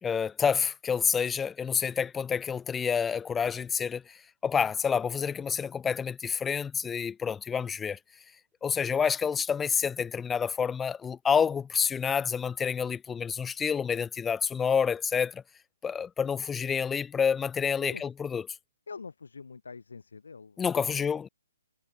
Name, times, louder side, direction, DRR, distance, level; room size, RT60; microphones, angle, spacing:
voice 1, 0.0-8.0 8.6-15.4 15.8-18.4 20.6-21.3, left 6 dB, 10° left, 1.7 m, -28 dB
voice 2, 18.9-21.1, left 4 dB, 70° left, 3.2 m, -45 dB
figure-of-eight pair, 130°, 0 cm